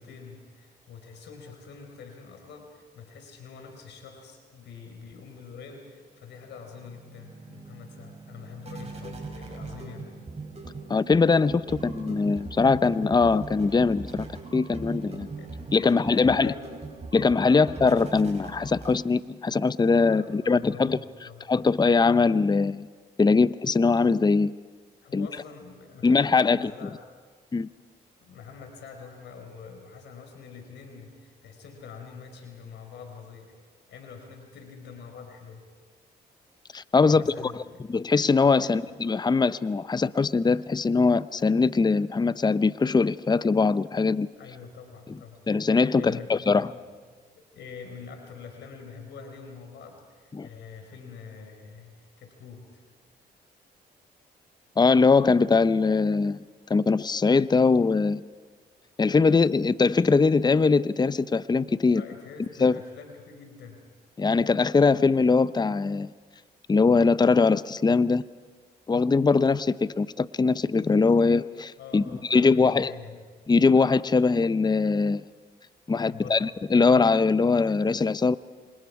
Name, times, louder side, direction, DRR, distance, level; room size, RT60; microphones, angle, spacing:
voice 1, 0.0-10.1 15.4-16.6 17.4-17.8 20.1-21.5 25.0-27.0 28.2-33.6 33.9-35.6 37.1-37.8 38.6-38.8 44.4-45.5 46.0-46.8 47.3-52.8 61.9-63.8 71.8-73.2 76.0-76.4, left 5 dB, 80° left, 4 dB, 4.4 m, -45 dB
sound 1, 6.5-19.4, right 3 dB, 35° right, 6.4 m, -40 dB
voice 2, 10.9-14.3 14.5-15.3 15.7-16.5 17.1-21.0 21.5-22.9 23.2-24.5 25.1-25.3 26.0-26.7 27.5-27.7 36.7-37.6 37.9-44.3 45.5-46.7 50.3-50.5 54.8-56.4 56.7-58.2 59.0-62.0 62.6-62.8 64.2-66.1 66.7-68.2 68.9-72.0 72.3-72.9 73.5-75.2 75.9-78.4, left 4 dB, 25° left, 16 dB, 0.6 m, -22 dB
28.5 x 26.5 x 4.8 m, 1.5 s
supercardioid pair, 60°, 18 cm